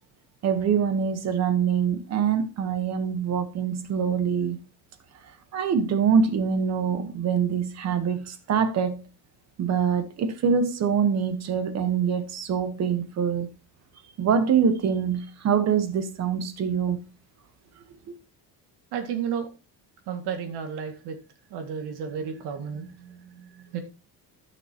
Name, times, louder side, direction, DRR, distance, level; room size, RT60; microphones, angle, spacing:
voice 1, 0.4-4.6 5.5-9.0 9.6-13.5 14.2-17.0, right 7 dB, 45° right, 1.2 m, -24 dB
voice 2, 18.9-19.5 20.1-21.2 21.5-23.8, right 7 dB, 85° right, 2.1 m, -33 dB
14.5 x 6.3 x 2.9 m
cardioid pair, 175°, 38 cm